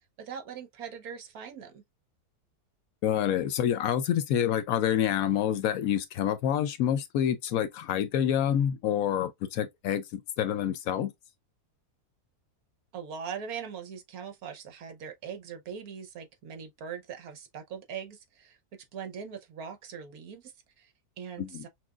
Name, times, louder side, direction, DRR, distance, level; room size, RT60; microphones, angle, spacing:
voice 1, 0.2-1.8 12.9-18.6 18.9-21.7, right 7 dB, 70° right, 1.3 m, -41 dB
voice 2, 3.0-11.1 21.4-21.6, left 10 dB, 70° left, 1.0 m, -27 dB
5.9 x 2.3 x 2.3 m
omnidirectional pair, 1.6 m